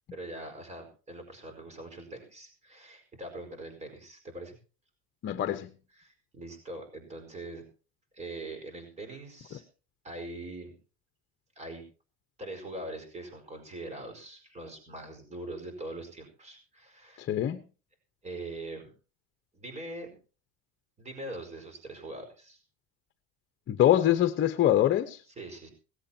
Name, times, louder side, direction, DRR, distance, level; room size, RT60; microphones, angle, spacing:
voice 1, 0.1-4.6 5.9-7.7 8.1-9.6 10.0-10.7 11.6-11.8 12.4-17.3 18.2-18.9 19.5-20.2 21.0-22.6 25.4-25.7, right 2 dB, 20° right, 4.8 m, -42 dB
voice 2, 5.2-5.7 17.2-17.6 23.7-25.2, left 12 dB, 40° left, 1.1 m, -24 dB
18.0 x 16.0 x 2.9 m
cardioid pair, 130°, 30 cm